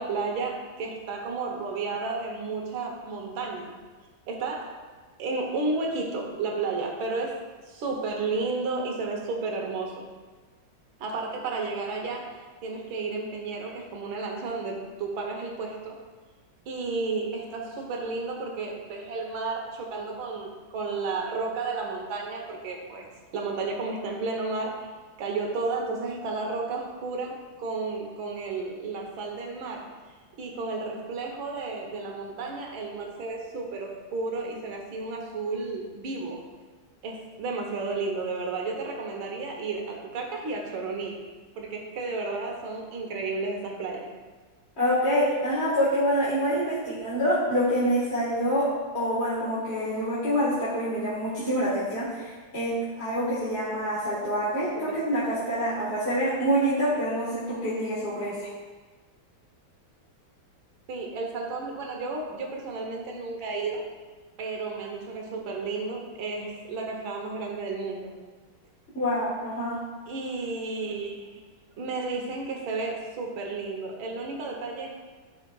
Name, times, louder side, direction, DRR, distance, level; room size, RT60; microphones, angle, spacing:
voice 1, 0.0-3.7 4.3-4.8 5.2-10.1 11.0-15.9 16.7-23.1 23.3-24.9 25.2-29.9 30.4-36.4 37.0-41.2 41.6-44.1 54.9-55.0 60.9-63.8 64.4-68.1 70.1-71.4 71.8-74.9, right 3 dB, 85° right, 1 dB, 1.8 m, -32 dB
voice 2, 44.8-48.7 48.9-58.5 68.9-69.8, equal, 35° left, -9 dB, 1.6 m, -26 dB
11.0 x 5.6 x 2.3 m, 1.4 s
omnidirectional pair, 2.2 m